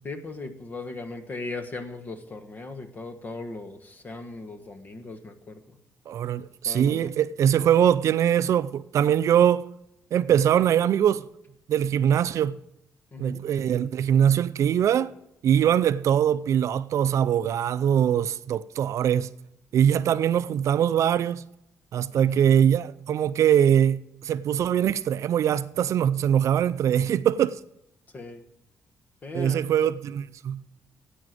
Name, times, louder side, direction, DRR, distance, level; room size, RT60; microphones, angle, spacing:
voice 1, 0.0-5.6 6.6-7.1 10.3-10.5 13.1-13.4 22.1-22.4 28.1-28.4 29.2-29.7, left 3 dB, 30° left, 1.3 m, -38 dB
voice 2, 6.1-9.6 10.1-11.2 11.7-12.6 13.2-15.1 15.4-19.3 19.7-21.4 21.9-27.6 29.3-30.6, right 9 dB, 60° right, 0.5 m, -22 dB
11.0 x 8.5 x 7.8 m
cardioid pair, 155°, 6 cm